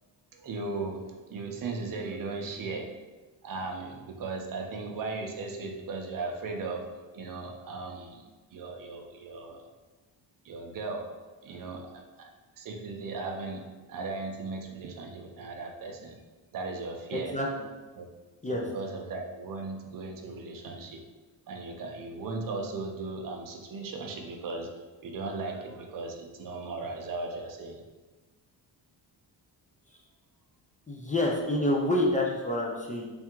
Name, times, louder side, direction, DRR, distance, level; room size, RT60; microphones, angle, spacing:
voice 1, 0.3-3.0 3.4-8.2 8.5-9.6 10.4-11.1 11.4-12.3 12.6-16.2 16.5-17.4 18.0-18.1 18.5-21.0 21.5-24.7 25.0-27.8, right 3 dB, 50° right, 3 dB, 0.6 m, -37 dB
voice 2, 17.1-17.5 18.4-18.6 30.9-33.1, left 1 dB, 20° left, -2 dB, 0.4 m, -27 dB
3.4 x 2.4 x 4.4 m, 1.3 s
wide cardioid pair, 140°, 44 cm